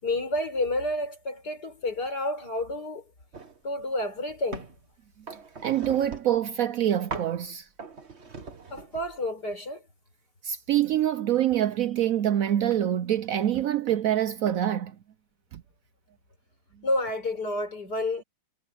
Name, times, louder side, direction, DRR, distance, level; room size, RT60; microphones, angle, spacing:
voice 1, 0.0-3.0 3.6-4.7 8.7-9.8 16.8-18.2, left 1 dB, 70° left, 5.5 m, -30 dB
sound 1, 3.3-3.6 4.0-4.8 5.3-6.5 7.1-7.4 7.8-9.2, right 4 dB, 40° right, 2.0 m, -40 dB
voice 2, 5.6-7.7 10.4-15.0 15.5-15.6, right 11 dB, 65° right, 0.9 m, -25 dB
omnidirectional pair, 1.8 m